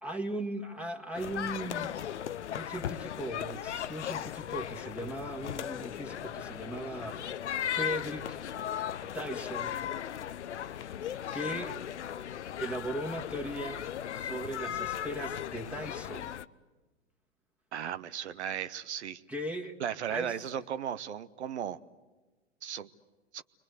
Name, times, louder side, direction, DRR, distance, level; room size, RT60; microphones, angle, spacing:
voice 1, 0.0-2.0 2.5-7.2 7.7-8.4 9.0-9.8 10.5-11.0 11.3-11.8 12.6-13.8 14.1-16.3 19.3-19.8 20.1-20.4, right 1 dB, 5° right, 2 dB, 1.8 m, -38 dB
sound 1, 1.1-16.4, left 10 dB, 80° left, 0.8 m, -37 dB
voice 2, 17.7-19.2 19.8-21.8 22.6-22.9 23.3-23.4, right 9 dB, 75° right, 13 dB, 1.1 m, -36 dB
29.0 x 23.5 x 8.1 m, 1.2 s
hypercardioid pair, 115°, 34 cm